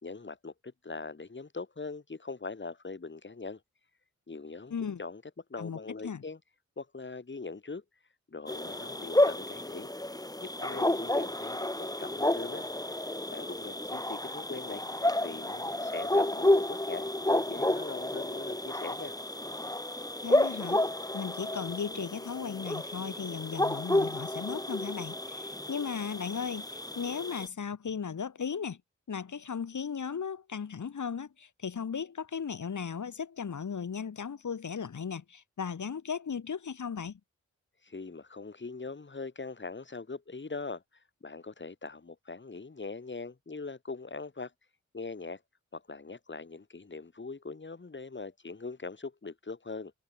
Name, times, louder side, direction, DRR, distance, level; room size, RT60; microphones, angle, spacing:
voice 1, 0.0-3.6 4.3-4.7 5.0-5.2 5.5-6.4 6.8-7.8 8.3-9.9 10.4-12.6 12.9-13.0 13.3-14.8 15.2-19.2 37.8-40.8 41.2-44.5 44.9-45.4 45.7-49.9, left 4 dB, 40° left, 4.0 m, -41 dB
voice 2, 4.7-5.0 5.6-6.2 20.2-20.8 21.1-28.8 29.1-37.2, left 6 dB, 75° left, 6.0 m, -36 dB
sound 1, 8.5-27.5, left 1 dB, 10° left, 3.1 m, -31 dB
cardioid pair, 70°, 30 cm